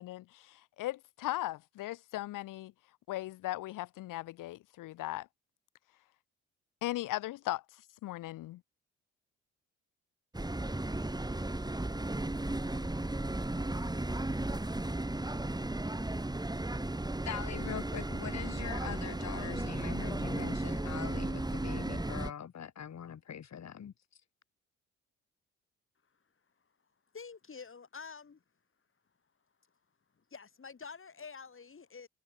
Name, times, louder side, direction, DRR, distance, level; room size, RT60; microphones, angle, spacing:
voice 1, 0.0-2.7 3.1-5.3 6.8-8.6, left 16 dB, 75° left, 4.4 m, -38 dB
sound 1, 10.3-22.3, right 2 dB, 10° right, 4.6 m, -35 dB
voice 2, 17.2-23.9, left 8 dB, 55° left, 8.0 m, -42 dB
voice 3, 27.1-28.4 30.2-32.1, left 5 dB, 40° left, 7.5 m, -48 dB
hypercardioid pair, 55°, 32 cm